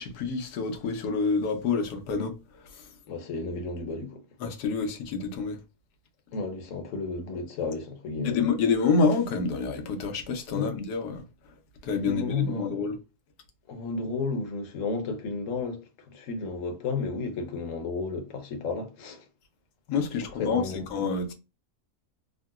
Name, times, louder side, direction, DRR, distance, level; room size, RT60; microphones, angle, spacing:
voice 1, 0.0-2.8 4.4-5.6 8.2-11.2 11.8-13.0 19.9-20.6 20.9-21.3, left 4 dB, 85° left, 1.2 m, -27 dB
voice 2, 3.1-4.2 6.3-8.4 10.5-10.7 12.0-12.8 13.7-19.3 20.3-20.9, left 4 dB, 60° left, 1.0 m, -32 dB
3.7 x 2.1 x 2.3 m
omnidirectional pair, 1.6 m